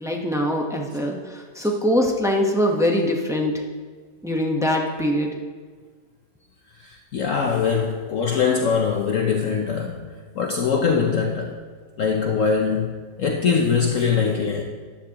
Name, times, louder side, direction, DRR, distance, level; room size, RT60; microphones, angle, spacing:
voice 1, 0.0-3.6 4.2-5.4, left 1 dB, 5° right, 0 dB, 0.6 m, -23 dB
voice 2, 6.8-11.6 12.0-14.6, left 6 dB, 60° left, 1 dB, 1.0 m, -22 dB
14.0 x 10.5 x 2.9 m, 1.5 s
omnidirectional pair, 1.8 m